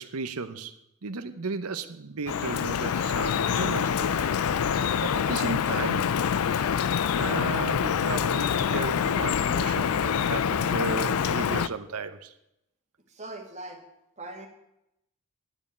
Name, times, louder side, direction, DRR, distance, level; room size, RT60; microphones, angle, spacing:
voice 1, 0.0-4.2 4.5-4.7 5.0-6.1 7.2-12.3, right 4 dB, 85° right, 11 dB, 0.8 m, -34 dB
Drip, 2.3-11.7, left 7 dB, 85° left, 0.4 m, -26 dB
voice 2, 13.1-13.8 14.2-14.5, right 2 dB, 35° right, 2 dB, 1.9 m, -40 dB
11.5 x 5.4 x 8.4 m, 0.84 s
head